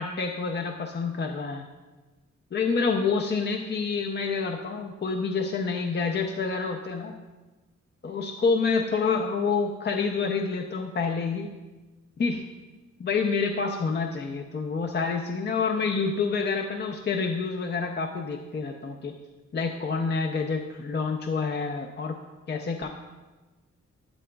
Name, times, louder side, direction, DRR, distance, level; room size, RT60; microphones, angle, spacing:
voice 1, 0.0-1.7 2.5-7.1 8.0-11.5 12.2-12.4 13.0-19.1 19.5-22.2 22.5-22.9, left 4 dB, 35° left, 3 dB, 0.5 m, -28 dB
12.0 x 8.4 x 2.3 m, 1.2 s
wide cardioid pair, 130°, 30 cm